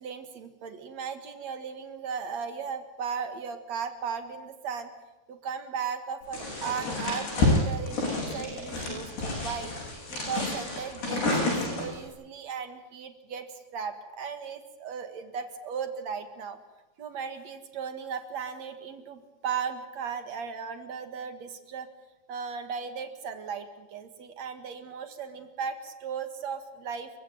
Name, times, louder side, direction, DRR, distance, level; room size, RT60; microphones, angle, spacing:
voice 1, 0.0-4.9 5.3-9.7 10.1-16.6 17.0-21.9 22.3-27.1, right 6 dB, 50° right, 7 dB, 2.3 m, -36 dB
sound 1, 6.3-12.0, left 2 dB, 70° left, 9.6 m, -29 dB
29.5 x 15.5 x 9.1 m, 1.0 s
omnidirectional pair, 5.1 m